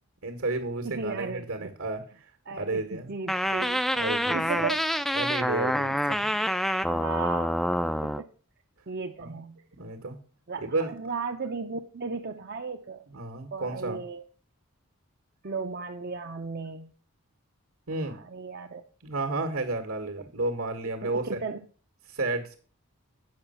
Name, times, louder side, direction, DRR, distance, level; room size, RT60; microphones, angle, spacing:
voice 1, 0.2-2.0 2.6-3.1 3.4-3.5 3.9-4.6 5.1-6.3 9.2-9.3 9.7-10.2 10.6-10.9 13.1-14.0 17.9-18.2 19.0-21.4 22.1-22.6, right 2 dB, 75° right, 4 dB, 1.7 m, -32 dB
voice 2, 0.8-1.7 2.5-3.8 4.3-4.9 5.8-7.7 8.0-8.3 8.9-9.6 10.5-13.1 13.5-14.2 15.4-16.9 18.0-18.8 20.2-20.3 21.0-21.6, right 4 dB, 45° right, 3 dB, 0.7 m, -36 dB
sound 1, 3.3-8.2, equal, ahead, 0.3 m, -27 dB
8.9 x 6.4 x 5.7 m, 0.40 s
head